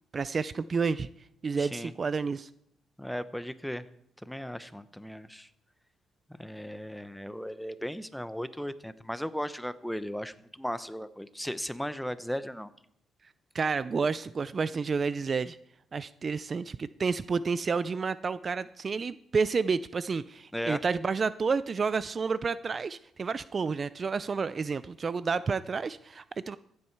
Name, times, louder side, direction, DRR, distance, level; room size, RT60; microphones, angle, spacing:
voice 1, 0.1-1.1 1.4-2.5 13.5-15.6 15.9-26.6, right 5 dB, 40° right, 16 dB, 0.3 m, -30 dB
voice 2, 1.6-1.9 3.0-3.8 4.2-5.5 6.4-12.7 20.5-20.8, equal, 5° left, 14 dB, 0.7 m, -36 dB
15.0 x 8.6 x 4.6 m, 0.76 s
cardioid pair, 90°, 0 cm